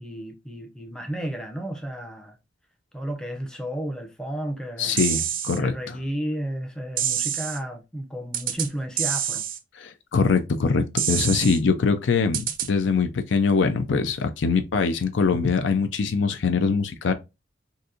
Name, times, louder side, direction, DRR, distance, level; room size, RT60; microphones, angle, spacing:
voice 1, 0.0-2.4 2.9-5.0 5.6-9.4, right 1 dB, 5° left, 0.5 m, -32 dB
voice 2, 4.8-6.0 9.7-17.1, left 5 dB, 80° left, 0.5 m, -23 dB
sound 1, 5.0-5.6 7.0-7.6 8.3-8.7 9.0-9.6 11.0-11.6 12.3-12.7, right 10 dB, 45° right, 0.4 m, -26 dB
4.0 x 2.6 x 2.4 m
head